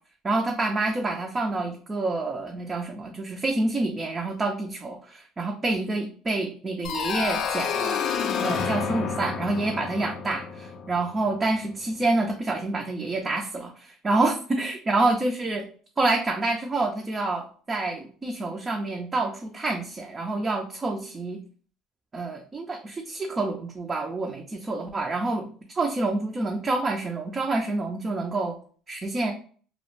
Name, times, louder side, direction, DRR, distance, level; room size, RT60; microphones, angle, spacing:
voice 1, 0.2-8.0 8.4-15.7 16.0-21.4 22.1-25.5 25.8-28.6 28.9-29.3, right 2 dB, 25° right, 2 dB, 0.4 m, -27 dB
sound 1, 6.8-11.5, left 6 dB, 55° left, 0.4 m, -29 dB
2.3 x 2.0 x 3.0 m, 0.44 s
supercardioid pair, 100°, 0 cm